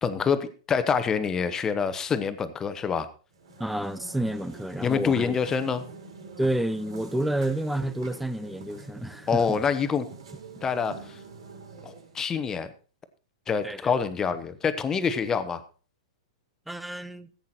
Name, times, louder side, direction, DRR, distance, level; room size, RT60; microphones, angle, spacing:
voice 1, 0.0-3.1 4.8-5.8 9.3-10.1 10.6-11.2 11.8-12.7 13.5-15.6, left 6 dB, 15° left, 1.1 m, -26 dB
sound 1, 3.3-12.2, right 3 dB, 80° right, 4.6 m, -46 dB
voice 2, 3.6-5.4 6.4-9.6 10.6-10.7 13.6-13.9 16.7-17.3, right 1 dB, ahead, 0.6 m, -30 dB
15.0 x 8.5 x 4.4 m
hypercardioid pair, 140°, 3 cm